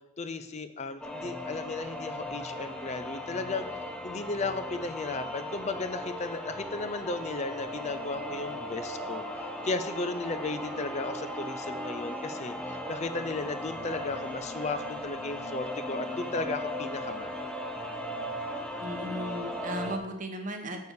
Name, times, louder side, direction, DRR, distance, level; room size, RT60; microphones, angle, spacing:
voice 1, 0.2-3.6 4.0-17.3, left 3 dB, 35° left, 11 dB, 0.5 m, -35 dB
sound 1, 1.0-20.0, left 1 dB, 5° left, 0.8 m, -37 dB
voice 2, 18.8-20.9, equal, 45° right, 5 dB, 1.1 m, -36 dB
6.9 x 6.7 x 6.5 m, 0.96 s
head